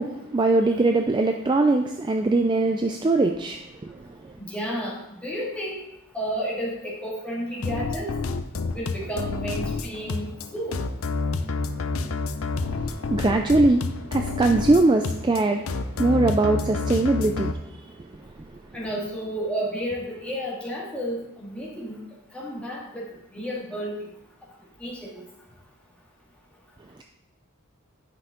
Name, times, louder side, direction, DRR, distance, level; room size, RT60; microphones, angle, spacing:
voice 1, 0.0-4.3 13.1-13.8 14.1-17.8, right 2 dB, 20° right, 5 dB, 0.3 m, -22 dB
voice 2, 4.4-5.7 6.1-8.1 8.7-10.8 18.7-22.0 22.3-24.0 24.8-25.2, equal, 5° left, -5 dB, 2.0 m, -31 dB
sound 1, 7.6-17.5, left 3 dB, 80° left, 0.6 m, -29 dB
10.5 x 5.7 x 3.7 m, 0.85 s
head